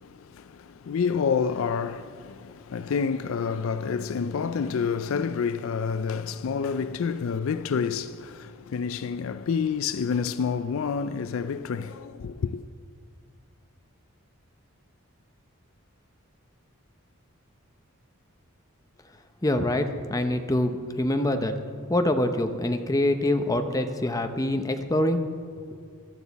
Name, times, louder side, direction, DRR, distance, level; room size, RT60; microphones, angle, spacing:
voice 1, 0.0-12.6, left 6 dB, 65° left, 0.4 m, -28 dB
voice 2, 19.4-21.5 21.9-25.2, left 1 dB, 15° left, 0.6 m, -25 dB
16.5 x 12.0 x 4.1 m
head